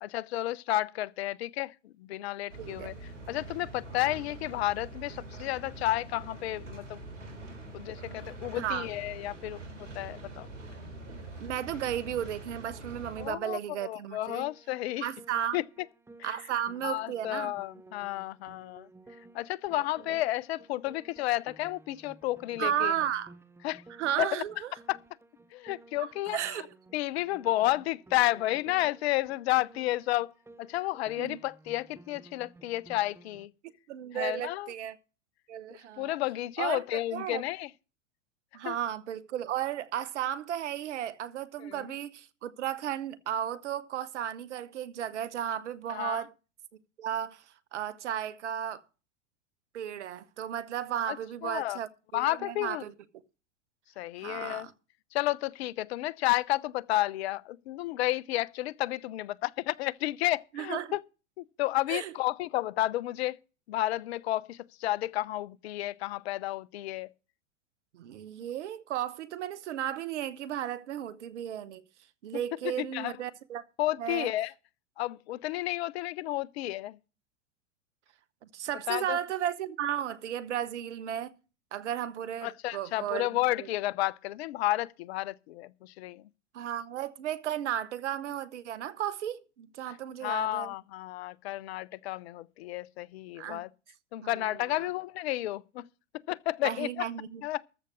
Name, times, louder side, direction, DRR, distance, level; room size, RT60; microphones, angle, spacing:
voice 1, 0.0-7.0 7.7-10.5 13.2-15.1 15.5-15.6 16.2-16.4 16.8-18.9 19.3-22.9 23.6-23.8 24.2-24.4 24.9-25.0 25.5-26.5 26.9-30.3 30.6-33.5 34.1-34.7 36.0-37.7 38.6-38.8 41.6-41.9 45.9-46.2 51.1-51.2 51.4-51.8 52.1-52.8 54.0-54.7 55.1-61.0 61.4-63.4 63.7-67.1 72.6-73.2 73.8-74.5 75.0-77.0 78.9-79.2 82.4-86.3 89.9-90.0 90.2-93.7 94.1-95.9 96.3-97.1 97.4-97.6, left 16 dB, 60° left, 0.7 m, -31 dB
sound 1, 2.5-13.3, right 2 dB, 85° right, 3.4 m, -44 dB
voice 2, 2.6-2.9 8.5-8.9 11.4-14.5 15.0-15.6 16.2-17.5 20.1-20.2 22.6-23.3 24.0-24.7 26.3-26.7 31.2-31.4 33.9-35.0 35.5-36.2 36.6-37.4 38.5-46.3 47.0-47.4 47.7-48.8 49.7-52.9 54.2-54.7 60.5-60.9 61.9-62.1 67.9-71.8 72.2-73.6 74.0-74.3 78.5-81.3 81.7-83.3 83.6-83.7 86.5-90.7 93.4-93.6 94.2-94.4 94.8-94.9 96.6-97.4, right 10 dB, 70° right, 1.3 m, -34 dB
Piano, 14.3-33.5, right 2 dB, 5° right, 1.0 m, -55 dB
14.0 x 6.8 x 6.1 m
hypercardioid pair, 100°, 36 cm